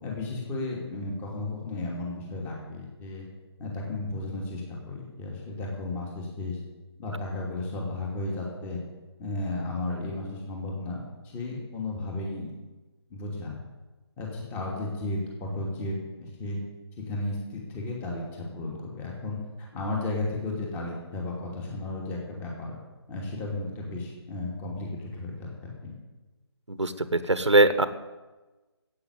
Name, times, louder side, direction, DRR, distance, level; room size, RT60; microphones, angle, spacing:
voice 1, 0.0-3.3 3.6-6.6 7.0-8.8 9.2-12.6 13.1-13.6 14.2-16.6 17.1-19.4 19.7-22.7 23.1-25.9, left 2 dB, 15° left, -2 dB, 2.6 m, -34 dB
voice 2, 26.7-27.9, right 2 dB, 90° right, 12 dB, 1.3 m, -22 dB
15.0 x 8.7 x 8.3 m, 1.2 s
figure-of-eight pair, 150°, 15 cm